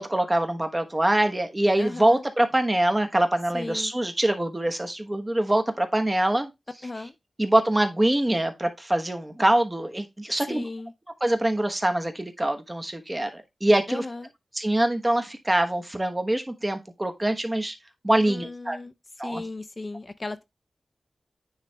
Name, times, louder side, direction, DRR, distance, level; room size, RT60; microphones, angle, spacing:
voice 1, 0.0-6.5 7.4-10.6 11.2-14.0 14.6-17.7 18.0-18.8 19.2-19.4, right 1 dB, 20° right, 1.1 m, -24 dB
voice 2, 1.8-2.2 3.5-3.9 6.8-7.1 10.5-10.9 13.9-14.3 18.3-18.9 19.2-20.4, left 2 dB, 35° left, 0.6 m, -36 dB
9.3 x 3.3 x 3.3 m
wide cardioid pair, 65°, 0 cm